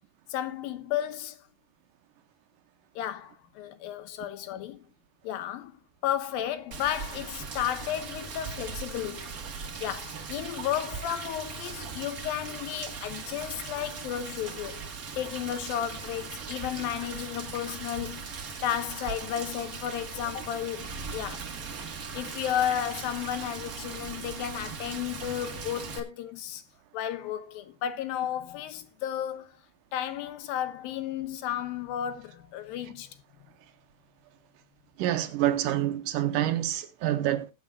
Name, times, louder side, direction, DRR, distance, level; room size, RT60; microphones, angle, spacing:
voice 1, 0.3-1.4 3.0-4.8 5.2-9.4 9.8-14.8 15.2-18.3 18.6-21.5 22.1-26.6 26.9-29.6 29.9-33.2, left 11 dB, 80° left, 2.9 m, -33 dB
Rain, 6.7-26.0, right 5 dB, 55° right, 1.0 m, -39 dB
voice 2, 35.0-37.5, right 13 dB, 75° right, 2.2 m, -27 dB
19.0 x 8.7 x 2.3 m
omnidirectional pair, 4.1 m